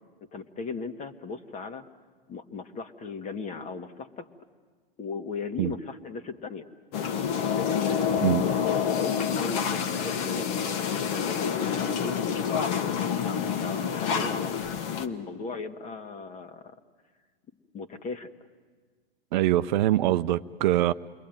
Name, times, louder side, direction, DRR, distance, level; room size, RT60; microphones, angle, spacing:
voice 1, 0.3-1.8 2.3-4.3 5.0-6.6 7.5-12.1 12.9-14.5 14.9-16.8 17.7-18.3, left 4 dB, 25° left, 1.7 m, -37 dB
sound 1, 6.9-15.1, left 7 dB, 40° left, 1.7 m, -28 dB
voice 2, 19.3-20.9, right 14 dB, 50° right, 0.7 m, -23 dB
29.0 x 22.0 x 9.2 m
hypercardioid pair, 105°, 30 cm